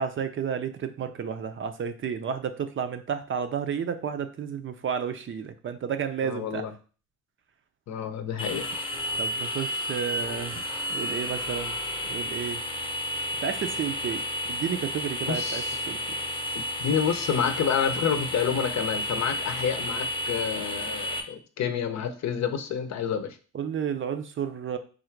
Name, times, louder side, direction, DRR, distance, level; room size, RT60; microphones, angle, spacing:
voice 1, 0.0-6.7 9.2-11.7 12.0-12.6 13.4-16.0 23.5-24.8, right 7 dB, 45° right, 9 dB, 0.5 m, -32 dB
voice 2, 6.2-6.7 7.9-8.7 15.3-15.8 16.5-23.4, left 7 dB, 65° left, 9 dB, 0.7 m, -29 dB
sound 1, 8.4-21.2, left 1 dB, 15° left, 0.8 m, -32 dB
3.8 x 2.4 x 4.5 m, 0.38 s
cardioid pair, 90°, 30 cm